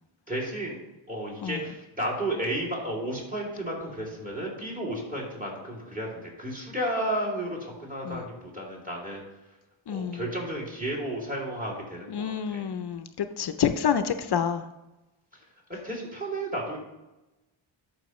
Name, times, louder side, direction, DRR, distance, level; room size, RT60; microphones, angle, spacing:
voice 1, 0.3-0.8 1.1-9.2 9.9-12.6 15.7-16.8, right 1 dB, 15° right, -2 dB, 2.8 m, -33 dB
voice 2, 9.9-10.2 12.1-14.6, left 8 dB, 55° left, 10 dB, 0.6 m, -28 dB
12.0 x 5.2 x 3.1 m, 1.0 s
wide cardioid pair, 105°, 49 cm